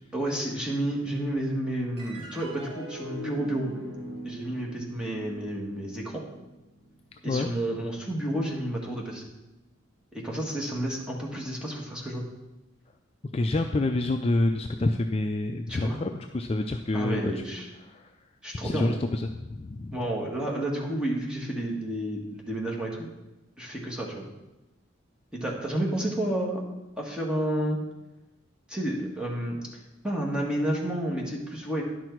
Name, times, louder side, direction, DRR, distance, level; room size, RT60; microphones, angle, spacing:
voice 1, 0.1-3.8 4.2-6.2 7.2-9.3 10.1-12.2 15.7-16.0 16.9-17.7 18.4-19.0 19.9-23.1 23.6-24.3 25.3-26.6 27.0-27.8 28.7-31.8, right 1 dB, 5° right, -2 dB, 1.5 m, -31 dB
sound 1, 2.0-8.6, equal, 55° right, 3.7 m, -43 dB
voice 2, 13.3-17.2 17.9-18.1 18.6-19.9, left 2 dB, 30° left, 5 dB, 0.4 m, -27 dB
10.5 x 6.1 x 4.6 m, 1.0 s
head